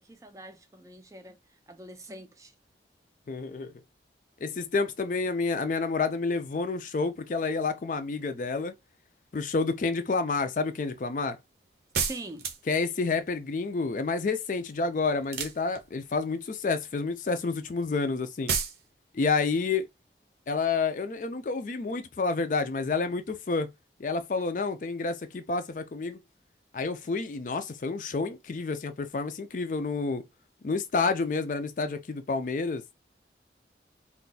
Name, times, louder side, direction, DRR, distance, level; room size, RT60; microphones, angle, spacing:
voice 1, 0.0-2.5 12.1-12.5, right 1 dB, 20° right, 0.4 m, -44 dB
voice 2, 3.3-3.7 4.4-8.7 9.3-11.4 12.7-18.5 19.1-19.9 20.5-23.7 24.0-26.2 26.7-30.2 30.6-32.8, left 4 dB, 45° left, 0.4 m, -29 dB
sound 1, 11.9-12.8 15.2-16.1 18.5-18.8, right 6 dB, 65° right, 0.6 m, -30 dB
2.5 x 2.3 x 3.9 m
head